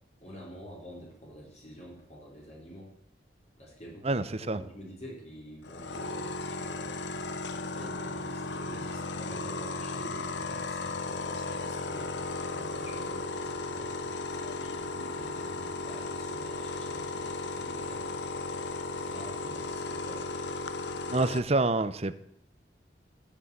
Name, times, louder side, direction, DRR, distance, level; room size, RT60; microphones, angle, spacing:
voice 1, 0.2-2.9 3.6-7.1 7.7-18.7 19.0-20.2, equal, 40° left, -2 dB, 4.9 m, -48 dB
voice 2, 4.0-4.6 21.1-22.1, right 2 dB, 35° right, 13 dB, 0.9 m, -27 dB
sound 1, 5.6-21.4, left 3 dB, 85° left, 1.1 m, -35 dB
14.0 x 10.0 x 8.8 m, 0.72 s
head